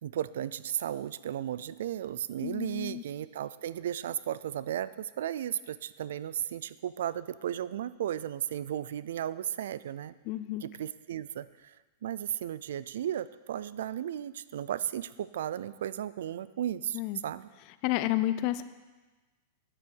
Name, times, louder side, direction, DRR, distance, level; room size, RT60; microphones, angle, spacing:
voice 1, 0.0-10.1 10.6-11.8 12.0-17.5, right 10 dB, 80° right, 17 dB, 0.4 m, -35 dB
voice 2, 2.4-3.0 10.3-10.6 16.9-17.2 17.8-18.6, left 15 dB, 40° left, 14 dB, 0.5 m, -30 dB
9.0 x 8.3 x 6.2 m, 1.2 s
supercardioid pair, 160°, 0 cm